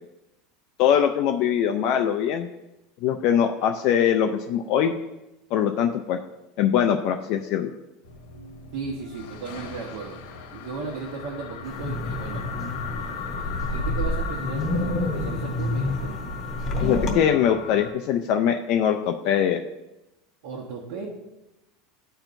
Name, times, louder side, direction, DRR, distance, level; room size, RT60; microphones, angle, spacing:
voice 1, 0.8-2.5 3.0-4.9 5.5-6.2 6.6-7.7 16.8-19.6, left 9 dB, 40° left, 5 dB, 0.4 m, -22 dB
sound 1, 8.0-17.9, left 6 dB, 80° left, 1.1 m, -38 dB
voice 2, 8.7-10.2 10.5-12.5 13.4-16.2 20.4-21.1, right 4 dB, 55° right, -4 dB, 1.1 m, -35 dB
Wind, 11.6-17.2, left 1 dB, 25° left, 0.9 m, -28 dB
13.0 x 4.4 x 2.6 m, 0.95 s
supercardioid pair, 180°, 0 cm